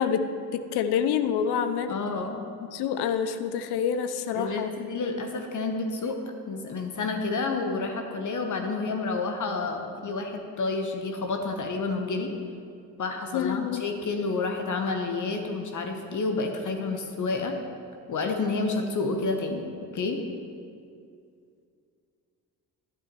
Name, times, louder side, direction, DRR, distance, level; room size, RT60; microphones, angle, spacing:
voice 1, 0.0-2.0 2.7-4.7 13.3-13.8, left 7 dB, 55° left, 10 dB, 0.8 m, -27 dB
voice 2, 1.9-2.4 4.3-6.2 6.5-12.3 13.0-17.5 18.1-19.6 19.9-20.2, left 3 dB, 40° left, 4 dB, 1.2 m, -29 dB
12.5 x 11.0 x 3.1 m, 2.3 s
figure-of-eight pair, 45°, 48 cm